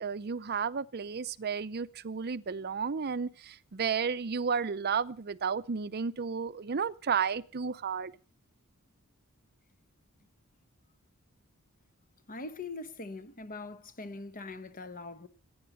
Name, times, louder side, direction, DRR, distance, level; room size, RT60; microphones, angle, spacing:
voice 1, 0.0-8.1, right 6 dB, 45° right, 0.6 m, -32 dB
voice 2, 12.3-15.3, left 3 dB, 40° left, 1.2 m, -42 dB
19.0 x 9.5 x 5.4 m
head